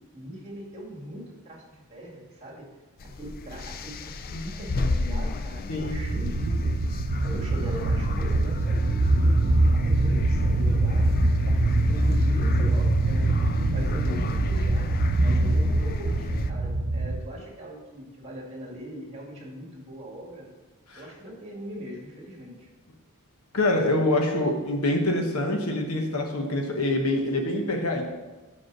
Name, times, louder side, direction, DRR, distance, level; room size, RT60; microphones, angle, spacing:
voice 1, 0.1-2.7 3.0-6.7 7.2-13.3 13.7-14.9 15.2-20.5 20.9-22.7, equal, 30° right, -3 dB, 2.1 m, -40 dB
sound 1, 3.0-16.5, left 3 dB, 40° left, 0.4 m, -31 dB
sound 2, 5.8-17.2, right 2 dB, 60° right, 0.5 m, -24 dB
voice 2, 23.5-28.0, left 1 dB, 75° left, 3 dB, 1.1 m, -25 dB
5.9 x 5.3 x 6.0 m, 1.2 s
head